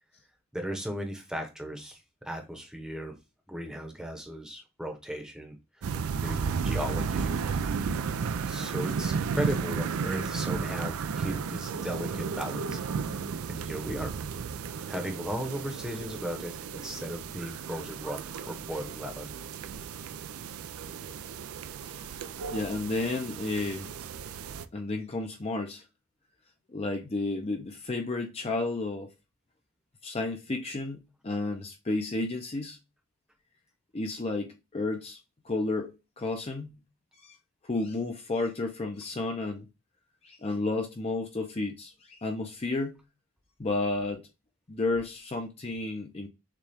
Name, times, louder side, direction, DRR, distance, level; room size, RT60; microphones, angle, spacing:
voice 1, 0.5-2.0 2.2-3.1 3.5-7.7 8.5-12.8 13.5-14.1 14.9-19.3, equal, 5° right, 0.8 m, -36 dB
sound 1, 5.8-24.7, right 5 dB, 85° right, 0.4 m, -34 dB
voice 2, 21.8-23.9 24.7-25.8 26.7-29.1 30.0-32.8 33.9-35.2 35.4-36.7 37.2-37.3 37.6-39.7 40.2-43.0 43.6-44.2 44.7-46.3, left 2 dB, 30° left, 0.6 m, -32 dB
6.6 x 2.3 x 3.4 m
head